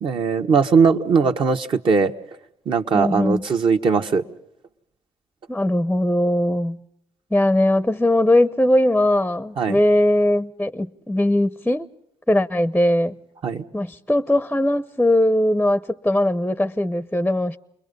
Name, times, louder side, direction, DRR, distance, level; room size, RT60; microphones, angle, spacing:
voice 1, 0.0-2.1 2.7-4.2 9.6-9.8 13.4-13.6, right 5 dB, 50° right, 1.6 m, -19 dB
voice 2, 2.9-3.4 5.5-6.8 7.3-11.9 12.3-13.2 13.7-17.6, left 1 dB, 5° left, 0.8 m, -20 dB
28.5 x 22.0 x 5.4 m
cardioid pair, 80°, 11 cm